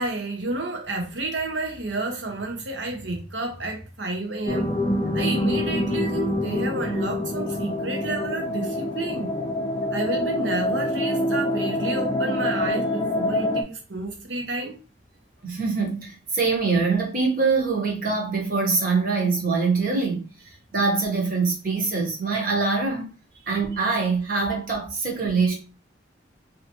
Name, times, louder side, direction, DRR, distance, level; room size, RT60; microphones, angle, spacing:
voice 1, 0.0-4.7 5.1-9.3 9.9-14.8, right 2 dB, 75° right, 0.9 m, -30 dB
sound 1, 4.5-13.6, left 1 dB, 25° left, 0.4 m, -26 dB
voice 2, 15.4-20.3 20.7-23.1 23.5-25.5, right 4 dB, 45° right, 1.1 m, -24 dB
3.2 x 2.8 x 2.8 m
head